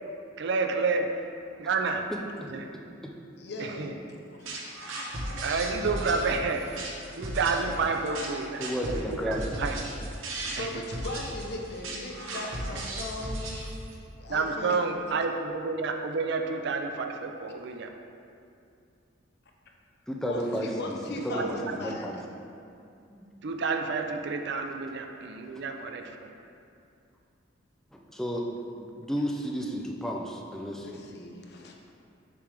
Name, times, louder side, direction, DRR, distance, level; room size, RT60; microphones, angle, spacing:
voice 1, 0.4-1.1 1.6-2.0 2.5-2.7 3.6-3.9 5.4-6.6 7.2-9.0 9.3-9.8 10.5-10.7 14.3-17.9 21.3-21.5 23.4-26.3, right 4 dB, 60° right, 4 dB, 0.4 m, -29 dB
voice 2, 2.1-2.5 8.6-9.5 20.1-20.9 21.2-22.2 23.1-23.2 27.9-31.0, equal, ahead, -1 dB, 0.4 m, -33 dB
voice 3, 3.4-4.4 10.6-13.6 14.2-14.8 20.3-22.1 30.8-31.8, left 2 dB, 55° left, 0 dB, 0.7 m, -38 dB
sound 1, 4.5-14.0, right 1 dB, 80° right, 1.0 m, -36 dB
6.8 x 3.2 x 4.9 m, 2.6 s
head